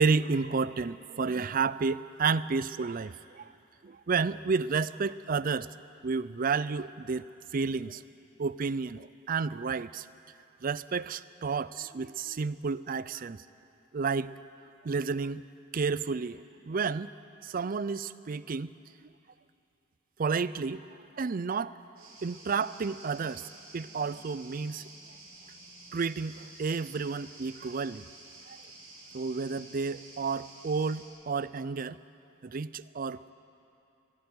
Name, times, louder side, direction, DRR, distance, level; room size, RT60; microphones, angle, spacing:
voice 1, 0.0-3.5 3.8-5.7 6.0-8.0 8.4-10.1 10.6-13.4 13.9-14.4 14.8-15.4 15.7-17.1 17.4-18.7 20.2-20.9 21.2-21.8 22.2-23.5 23.7-24.9 25.9-28.0 28.5-28.6 29.1-32.0 32.4-33.3, right 5 dB, 40° right, 17 dB, 0.4 m, -31 dB
sound 1, 22.0-31.1, right 2 dB, 85° right, 5.5 m, -51 dB
25.5 x 11.5 x 9.6 m, 2.7 s
head